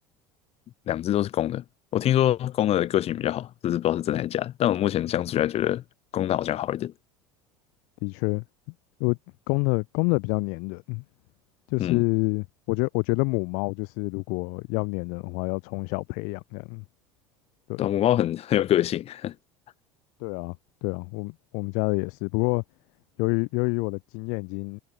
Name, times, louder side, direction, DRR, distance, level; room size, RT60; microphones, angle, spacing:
voice 1, 0.9-1.6 1.9-5.8 6.1-6.9 11.8-12.0 17.8-19.3, left 12 dB, 45° left, 1.7 m, -25 dB
voice 2, 8.0-8.4 9.0-9.2 9.5-11.0 11.7-16.8 17.7-17.8 20.2-20.6 20.8-22.6 23.2-24.8, left 36 dB, 60° left, 0.7 m, -27 dB
hypercardioid pair, 75°, 15 cm